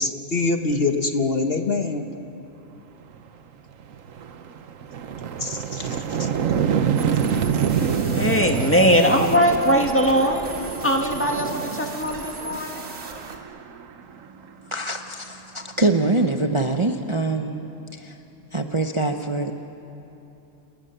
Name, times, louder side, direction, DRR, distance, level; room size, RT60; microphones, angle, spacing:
voice 1, 0.0-2.1 5.4-6.3, left 3 dB, 50° left, 5 dB, 1.3 m, -24 dB
sound 1, 3.1-3.3 3.7-14.5, right 7 dB, 90° right, 1.4 m, -27 dB
sound 2, 7.0-13.4, right 3 dB, 55° right, 2.5 m, -39 dB
voice 2, 8.1-12.9, equal, 10° left, 2 dB, 2.0 m, -21 dB
voice 3, 14.6-17.6 17.9-18.2 18.5-19.5, right 2 dB, 25° right, 4 dB, 0.9 m, -24 dB
29.0 x 28.5 x 6.8 m, 2.9 s
omnidirectional pair, 1.3 m